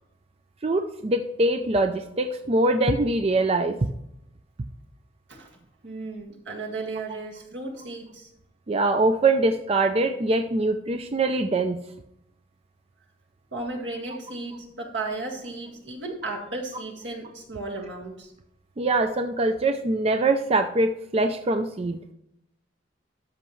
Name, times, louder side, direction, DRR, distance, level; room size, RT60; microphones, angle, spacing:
voice 1, 0.6-3.8 8.7-11.8 18.8-22.0, right 2 dB, 35° right, 6 dB, 0.5 m, -23 dB
voice 2, 5.8-8.3 13.5-18.3, right 2 dB, 80° right, 0 dB, 2.0 m, -35 dB
13.0 x 5.8 x 3.1 m, 0.79 s
head